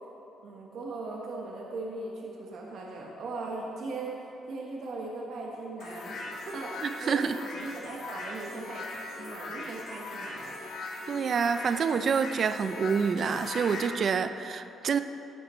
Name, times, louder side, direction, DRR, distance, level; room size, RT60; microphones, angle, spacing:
voice 1, 0.4-4.1 4.5-6.1 6.5-6.7 7.0-8.9 9.2-10.7, right 3 dB, 70° right, -2 dB, 1.2 m, -38 dB
sound 1, 5.8-13.9, left 2 dB, 75° left, 1.3 m, -40 dB
voice 2, 6.8-7.4 11.1-15.0, right 6 dB, 55° right, 11 dB, 0.4 m, -27 dB
11.5 x 9.0 x 3.1 m, 3.0 s
cardioid pair, 90°, 0 cm